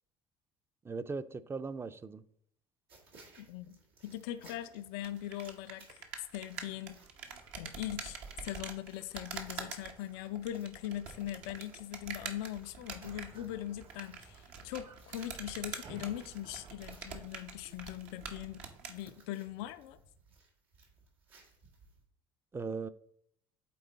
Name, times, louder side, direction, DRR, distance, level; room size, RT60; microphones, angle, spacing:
voice 1, 0.8-2.2 22.5-22.9, right 4 dB, 20° right, 0.4 m, -38 dB
sound 1, 2.9-22.0, right 3 dB, 90° right, 1.8 m, -63 dB
voice 2, 3.4-3.8 4.0-7.0 7.6-18.6 18.9-20.0, left 12 dB, 75° left, 0.4 m, -41 dB
sound 2, 5.0-19.0, right 6 dB, 70° right, 1.0 m, -46 dB
sound 3, 11.9-17.0, right 4 dB, 55° right, 1.5 m, -56 dB
8.5 x 3.6 x 4.0 m
hypercardioid pair, 75°, 12 cm